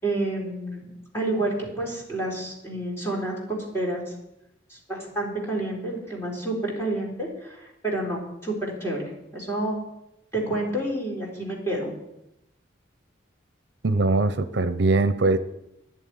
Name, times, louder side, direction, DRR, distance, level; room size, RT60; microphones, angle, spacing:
voice 1, 0.0-4.0 4.7-9.9 10.3-11.9, right 1 dB, 15° left, -3 dB, 3.8 m, -29 dB
voice 2, 13.8-15.4, right 3 dB, 65° right, 12 dB, 0.7 m, -21 dB
10.5 x 7.6 x 9.4 m, 0.86 s
head